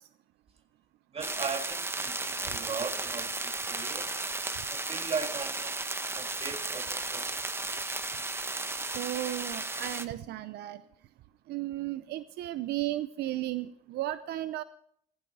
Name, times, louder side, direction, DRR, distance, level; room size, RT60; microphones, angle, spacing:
voice 1, 1.1-4.1 4.7-5.8 6.1-7.3, right 5 dB, 35° right, 7 dB, 1.8 m, -38 dB
sound 1, 1.2-10.1, right 2 dB, 15° right, 1.0 m, -34 dB
voice 2, 8.9-10.8 11.5-14.6, right 15 dB, 75° right, 13 dB, 0.6 m, -34 dB
16.0 x 14.5 x 4.2 m, 0.67 s
cardioid pair, 110°, 17 cm